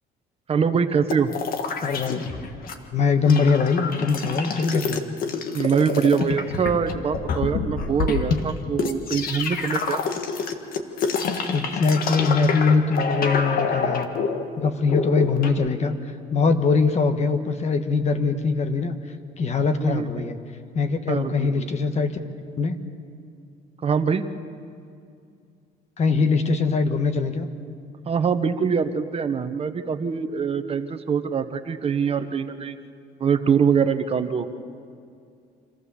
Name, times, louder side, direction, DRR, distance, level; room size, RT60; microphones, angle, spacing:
voice 1, 0.5-1.3 5.5-10.0 19.8-20.3 21.1-21.7 23.8-24.2 28.1-32.8 33.2-34.5, right 6 dB, 35° right, 8 dB, 1.1 m, -23 dB
sound 1, 1.1-2.7 3.0-15.5, left 5 dB, 60° left, 1.7 m, -27 dB
voice 2, 1.8-2.2 2.9-5.0 11.5-14.1 14.6-15.9 16.3-19.0 19.4-20.4 20.7-22.2 22.6-22.8 26.0-27.5, left 4 dB, 40° left, 8 dB, 1.4 m, -22 dB
26.0 x 15.0 x 7.1 m, 2.3 s
cardioid pair, 110°, 17 cm